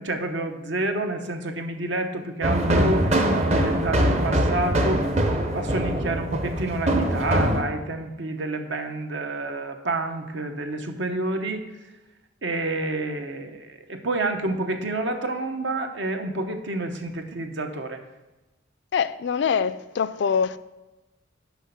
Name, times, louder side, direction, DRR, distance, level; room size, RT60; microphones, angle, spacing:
voice 1, 0.0-5.1 5.5-11.6 12.4-18.0, right 2 dB, 70° right, 0.9 m, -29 dB
sound 1, 2.4-7.6, right 1 dB, 35° right, 0.8 m, -23 dB
voice 2, 18.9-20.6, left 6 dB, 65° left, 0.3 m, -24 dB
6.3 x 5.7 x 6.7 m
head